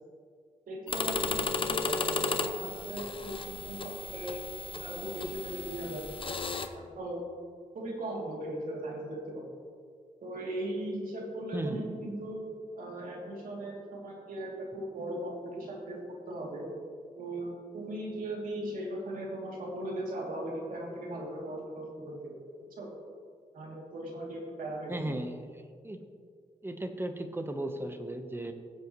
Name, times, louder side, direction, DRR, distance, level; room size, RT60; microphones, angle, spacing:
voice 1, 0.7-4.4 4.8-6.0 6.7-7.2 7.7-9.5 10.2-12.4 12.8-16.7 17.2-22.4 22.7-22.9 23.5-25.2, right 1 dB, 80° right, -3 dB, 2.9 m, -38 dB
sound 1, 0.9-6.7, left 4 dB, 40° left, 0.8 m, -34 dB
voice 2, 24.9-26.0 26.6-28.5, right 1 dB, 15° right, 6 dB, 1.1 m, -36 dB
19.0 x 7.8 x 3.1 m, 2.1 s
cardioid pair, 85°, 14 cm